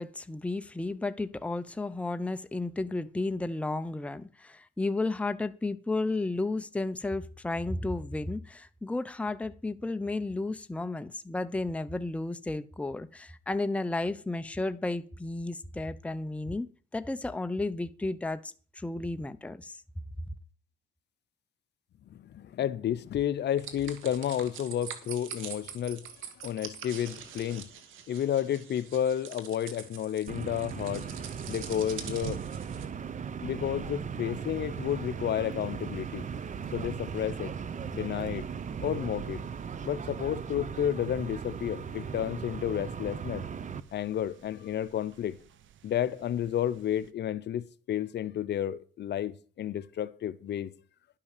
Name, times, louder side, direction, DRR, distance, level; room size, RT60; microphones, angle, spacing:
voice 1, 0.0-19.8, left 2 dB, 5° left, 0.6 m, -33 dB
voice 2, 22.1-26.1 26.4-27.7 28.1-31.1 31.5-32.4 33.4-36.3 36.7-37.5 37.9-38.5 38.8-39.4 39.8-43.4 43.9-45.4 45.8-50.7, left 10 dB, 60° left, 0.7 m, -31 dB
sound 1, 23.6-32.9, right 8 dB, 90° right, 1.6 m, -45 dB
sound 2, 30.3-43.8, right 6 dB, 40° right, 0.7 m, -38 dB
sound 3, 30.8-47.1, right 10 dB, 70° right, 0.8 m, -49 dB
11.0 x 5.7 x 6.6 m
cardioid pair, 90°, 20 cm